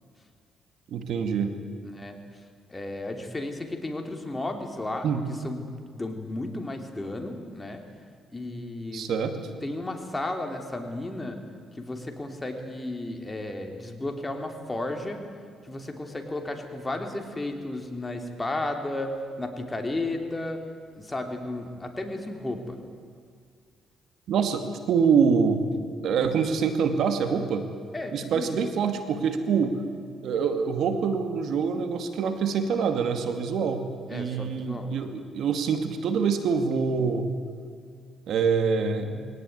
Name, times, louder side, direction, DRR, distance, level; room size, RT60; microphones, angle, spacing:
voice 1, 0.9-1.5 5.0-5.2 8.9-9.3 24.3-25.6 26.0-27.7 28.1-29.8 30.2-37.3 38.3-39.3, right 6 dB, 70° right, 7 dB, 2.3 m, -25 dB
voice 2, 1.8-2.4 2.7-5.7 5.9-7.8 8.3-9.1 9.6-11.4 11.7-15.2 15.6-20.6 20.9-22.8 27.9-28.6 34.1-34.9, left 2 dB, 20° left, 4 dB, 3.2 m, -33 dB
22.0 x 18.0 x 9.6 m, 2.1 s
cardioid pair, 90°, 0 cm